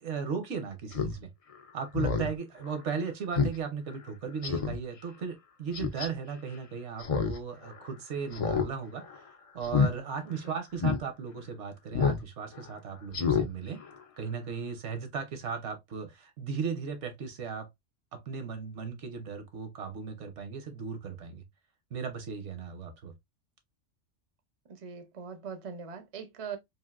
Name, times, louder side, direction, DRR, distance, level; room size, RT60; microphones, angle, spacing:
voice 1, 0.0-1.3 1.7-9.0 9.5-13.8 14.2-17.7 18.1-21.4 21.9-23.1, right 6 dB, 75° right, 1.1 m, -36 dB
Speech synthesizer, 0.9-1.1 1.5-1.6 1.9-2.3 2.7-2.8 3.4-3.6 3.9-4.0 4.4-4.8 5.7-6.1 7.0-7.4 7.7-7.8 8.3-8.7 9.0-9.2 9.6-9.9 10.3-10.4 10.8-11.0 11.9-12.2 12.5-12.7 13.1-13.5 13.8-13.9, left 5 dB, 70° left, 0.3 m, -28 dB
voice 2, 10.2-10.6 24.7-26.6, right 6 dB, 45° right, 0.5 m, -41 dB
3.3 x 2.5 x 2.4 m
omnidirectional pair, 1.2 m